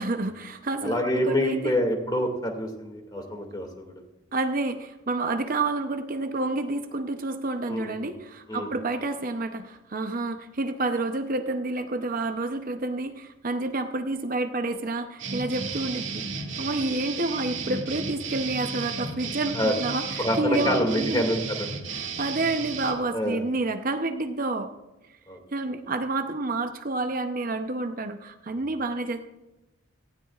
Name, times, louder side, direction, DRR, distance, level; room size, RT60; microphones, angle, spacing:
voice 1, 0.0-1.7 4.3-21.3 21.9-24.7 25.5-29.3, right 2 dB, 40° right, 7 dB, 0.7 m, -29 dB
voice 2, 0.8-3.9 7.7-8.1 8.5-8.7 19.5-19.7 20.2-21.7 23.1-23.4 25.3-25.4, equal, 20° left, 3 dB, 2.2 m, -27 dB
sound 1, 15.2-22.9, right 4 dB, 60° right, 2.1 m, -34 dB
18.0 x 15.5 x 2.4 m, 1.1 s
head